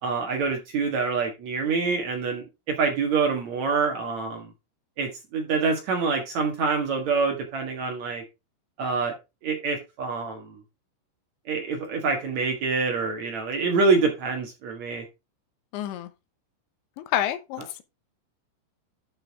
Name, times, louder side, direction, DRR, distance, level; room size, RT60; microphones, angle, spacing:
voice 1, 0.0-4.5 5.0-8.2 8.8-9.1 9.4-10.5 11.5-15.0, right 4 dB, 80° right, 1.6 m, -26 dB
voice 2, 15.7-16.1 17.0-17.8, left 12 dB, 75° left, 2.9 m, -28 dB
12.0 x 5.6 x 3.5 m
omnidirectional pair, 6.0 m